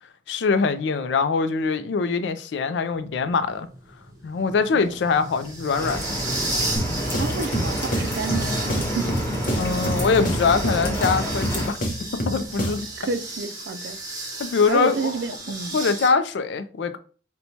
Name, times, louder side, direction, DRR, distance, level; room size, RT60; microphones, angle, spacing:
voice 1, 0.3-3.7 4.2-6.2 9.6-11.8 12.3-12.8 14.4-15.1 15.7-17.0, left 5 dB, 90° left, 0.4 m, -23 dB
sound 1, 2.9-16.1, right 2 dB, 20° right, 0.7 m, -35 dB
sound 2, 5.8-11.7, equal, 15° left, 1.0 m, -28 dB
sound 3, 6.8-13.0, equal, 50° left, 0.6 m, -29 dB
voice 2, 7.2-8.5 8.9-9.1 12.6-14.0 14.7-15.8, right 4 dB, 70° right, 0.4 m, -29 dB
4.3 x 2.2 x 2.7 m
head